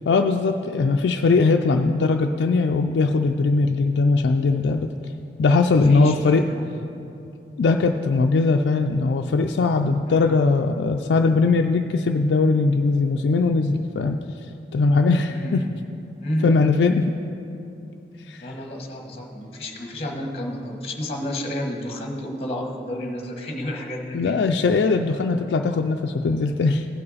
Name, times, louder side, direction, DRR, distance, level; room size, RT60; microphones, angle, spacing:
voice 1, 0.1-4.9 5.4-6.4 7.6-15.6 16.4-17.1 18.3-18.5 24.1-26.9, left 3 dB, 85° left, 3 dB, 0.4 m, -20 dB
voice 2, 5.7-6.1 6.5-6.7 10.1-10.4 15.3-15.7 16.2-16.5 18.4-24.4, left 1 dB, 35° left, 1 dB, 1.1 m, -31 dB
16.0 x 5.5 x 4.1 m, 2.8 s
head